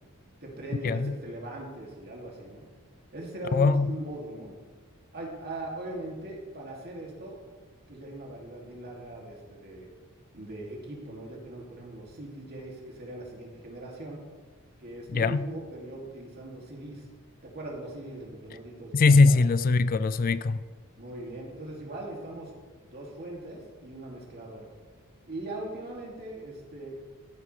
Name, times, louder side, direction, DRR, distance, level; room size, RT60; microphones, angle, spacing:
voice 1, 0.4-2.6 3.1-4.5 5.1-7.4 7.9-9.9 10.3-14.2 14.8-17.0 17.4-19.4 21.0-22.5 22.9-24.7 25.3-27.0, right 1 dB, 45° right, 2.7 m, -40 dB
voice 2, 3.5-3.9 15.1-15.4 18.9-20.6, left 3 dB, 40° left, 0.4 m, -21 dB
14.5 x 11.0 x 3.4 m
head